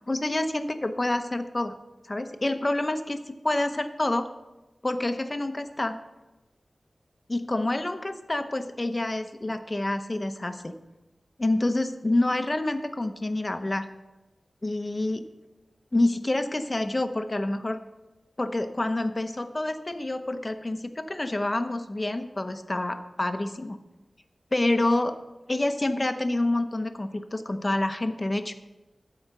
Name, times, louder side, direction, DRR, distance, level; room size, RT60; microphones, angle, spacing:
voice 1, 0.1-1.7 2.1-4.3 4.8-6.0 7.3-10.7 11.4-13.9 14.6-15.2 15.9-17.8 18.4-23.8 24.5-25.2 25.5-28.5, left 2 dB, 30° left, 8 dB, 0.8 m, -27 dB
13.0 x 4.9 x 6.7 m, 1.0 s
wide cardioid pair, 90°, 0 cm